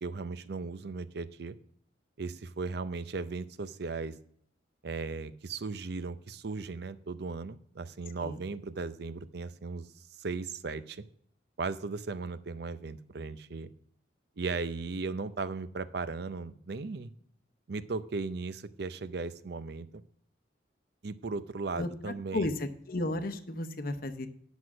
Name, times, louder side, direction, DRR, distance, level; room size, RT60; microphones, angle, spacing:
voice 1, 0.0-1.6 2.2-4.2 4.8-11.0 11.6-13.7 14.4-17.1 17.7-20.1 21.0-22.5, right 4 dB, 60° right, 13 dB, 0.6 m, -37 dB
voice 2, 22.3-24.3, left 1 dB, 50° left, 9 dB, 0.8 m, -33 dB
9.7 x 6.2 x 6.0 m, 0.64 s
head